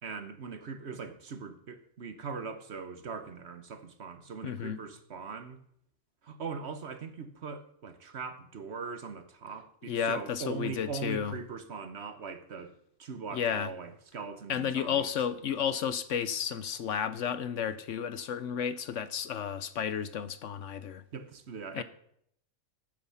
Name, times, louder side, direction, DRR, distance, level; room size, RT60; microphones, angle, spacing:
voice 1, 0.0-5.6 6.2-12.7 13.0-15.1 21.1-21.8, right 5 dB, 50° right, 1.2 m, -41 dB
voice 2, 4.4-4.8 9.9-11.3 13.3-13.7 14.5-21.0 21.7-21.8, left 8 dB, 65° left, 0.9 m, -32 dB
14.0 x 9.3 x 5.6 m
omnidirectional pair, 1.5 m